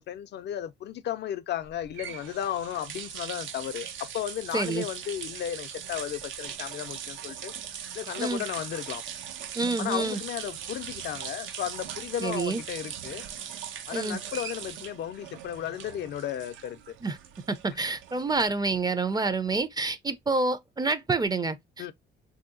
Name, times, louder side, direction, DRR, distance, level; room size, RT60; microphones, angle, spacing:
voice 1, 0.0-7.5 7.9-9.1 9.8-13.2 13.9-17.0 21.8-21.9, left 11 dB, 60° left, 0.4 m, -34 dB
sound 1, 1.6-18.7, right 9 dB, 75° right, 0.5 m, -40 dB
voice 2, 4.5-4.8 8.2-8.4 9.5-10.2 12.2-12.6 13.9-14.2 17.0-17.2 17.5-21.8, right 3 dB, 20° right, 0.4 m, -28 dB
3.0 x 2.7 x 2.5 m
cardioid pair, 90°, 20 cm